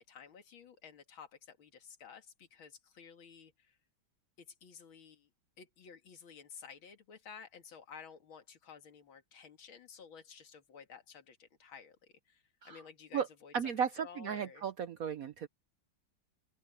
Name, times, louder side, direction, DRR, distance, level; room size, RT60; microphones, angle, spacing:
voice 1, 0.0-3.8 4.4-5.3 5.6-14.6, left 6 dB, 90° left, 2.6 m, -53 dB
voice 2, 13.5-15.5, right 7 dB, 65° right, 0.8 m, -35 dB
open air
omnidirectional pair, 2.2 m